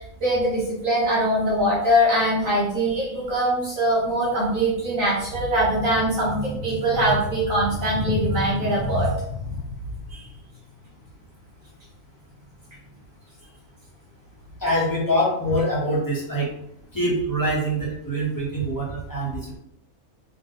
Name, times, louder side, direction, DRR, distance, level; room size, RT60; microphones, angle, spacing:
voice 1, 0.0-10.4, equal, 60° right, -7 dB, 1.5 m, -23 dB
voice 2, 14.6-16.5 16.9-19.6, equal, 15° left, -6 dB, 1.3 m, -24 dB
3.7 x 2.9 x 3.9 m, 0.78 s
omnidirectional pair, 1.6 m